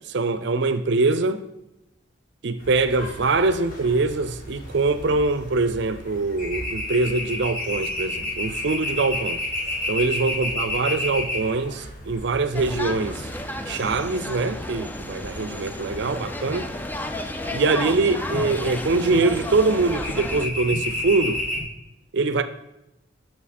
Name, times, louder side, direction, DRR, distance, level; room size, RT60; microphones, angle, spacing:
voice 1, 0.1-1.4 2.4-9.4 9.9-13.3 13.7-16.7 17.5-21.4 22.1-22.4, right 3 dB, 60° right, 0.5 m, -23 dB
sound 1, 2.6-21.6, left 1 dB, 45° left, 1.8 m, -32 dB
sound 2, 12.5-20.5, left 1 dB, 10° left, 0.4 m, -33 dB
7.3 x 6.0 x 4.3 m
head